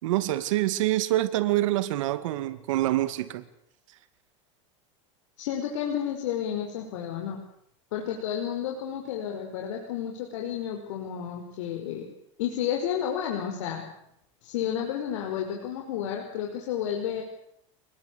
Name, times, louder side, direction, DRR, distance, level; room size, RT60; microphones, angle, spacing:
voice 1, 0.0-3.4, right 15 dB, 80° right, 2.3 m, -26 dB
voice 2, 5.4-7.4 7.9-12.1 12.4-13.8 14.4-17.2, left 9 dB, 75° left, 5.2 m, -31 dB
26.5 x 20.5 x 8.6 m
supercardioid pair, 155°, 16 cm